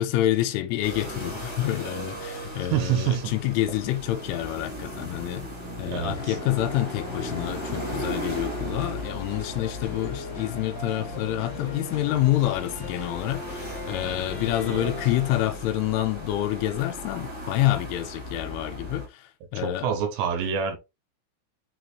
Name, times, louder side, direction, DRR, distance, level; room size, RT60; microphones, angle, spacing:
voice 1, 0.0-5.5 5.8-19.2 19.5-19.9, left 14 dB, 90° left, 3.3 m, -27 dB
sound 1, 0.8-19.1, equal, 30° right, 0.5 m, -37 dB
voice 2, 2.6-3.3 5.9-6.4 14.7-14.9 19.5-20.8, right 8 dB, 70° right, 3.0 m, -27 dB
sound 2, 6.0-15.5, left 4 dB, 65° left, 1.7 m, -39 dB
6.7 x 4.9 x 3.1 m
omnidirectional pair, 5.7 m